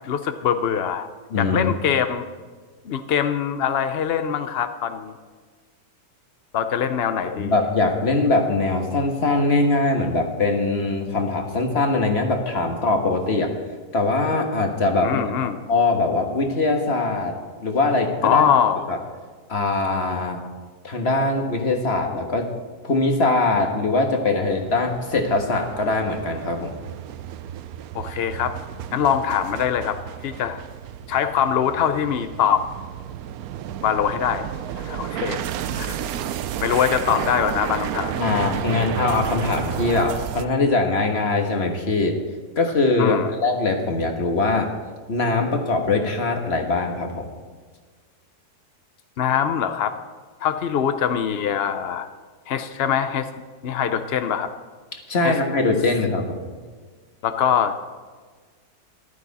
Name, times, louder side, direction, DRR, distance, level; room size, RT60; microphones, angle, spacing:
voice 1, 0.0-1.1 1.4-2.2 2.8-5.1 6.5-7.6 15.0-15.6 18.2-18.9 27.9-28.5 28.9-30.0 30.2-30.6 31.1-32.6 33.8-34.5 34.7-35.5 35.7-36.0 36.6-38.5 43.0-43.3 49.2-50.0 50.4-52.1 52.5-53.3 53.6-54.5 55.2-55.4 57.2-57.8, left 8 dB, 75° left, 9 dB, 0.5 m, -23 dB
voice 2, 1.3-1.7 7.2-13.5 13.9-17.4 17.6-18.4 18.9-19.0 19.5-20.4 20.8-22.5 22.8-26.8 38.2-42.2 42.6-44.7 45.1-47.3 54.9-56.4, left 3 dB, 40° left, 3 dB, 1.6 m, -22 dB
sound 1, 24.5-40.4, right 10 dB, 70° right, 0.9 m, -32 dB
14.0 x 12.5 x 4.1 m, 1.5 s
omnidirectional pair, 1.8 m